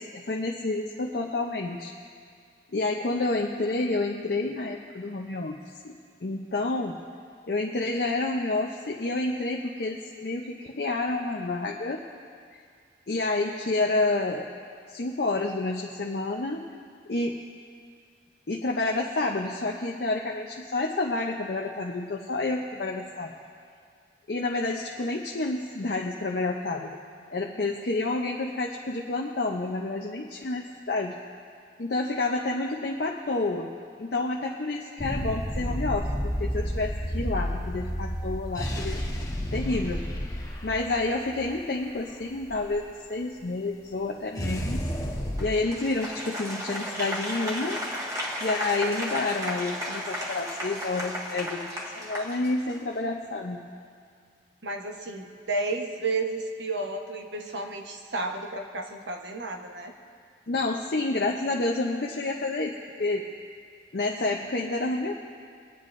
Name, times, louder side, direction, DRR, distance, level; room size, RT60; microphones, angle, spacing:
voice 1, 0.0-1.9 2.7-5.6 5.8-5.9 6.2-7.0 7.5-12.0 12.5-12.6 13.1-14.5 14.9-16.6 17.1-17.4 18.5-23.3 24.3-27.0 27.3-31.2 31.8-33.7 34.0-39.0 39.5-40.0 40.6-44.8 45.4-47.8 48.4-53.7 60.5-63.3 63.9-65.1, left 2 dB, 60° left, 0 dB, 0.6 m, -29 dB
sound 1, 35.0-42.8 44.4-45.4, equal, 20° left, 1.0 m, -31 dB
Applause, 45.4-52.9, equal, 20° right, 1.6 m, -34 dB
voice 2, 54.6-59.9, right 3 dB, 85° right, 3 dB, 1.1 m, -32 dB
23.5 x 9.3 x 2.6 m, 2.2 s
head